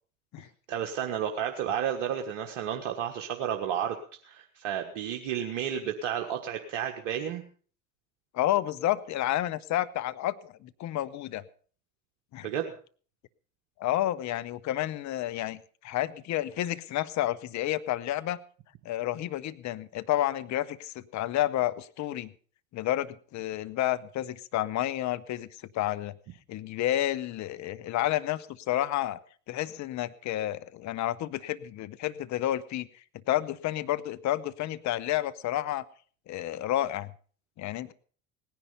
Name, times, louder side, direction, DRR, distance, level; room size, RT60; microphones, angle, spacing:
voice 1, 0.7-4.0 4.2-7.4 12.4-12.7, right 9 dB, 65° right, 4 dB, 1.6 m, -32 dB
voice 2, 8.3-11.4 12.3-12.5 13.8-18.4 18.8-22.3 22.7-26.1 26.5-29.2 29.5-32.9 33.3-35.8 36.3-37.1 37.6-37.9, left 13 dB, 45° left, 17 dB, 0.9 m, -30 dB
18.0 x 10.5 x 5.5 m, 0.44 s
hypercardioid pair, 75°, 40 cm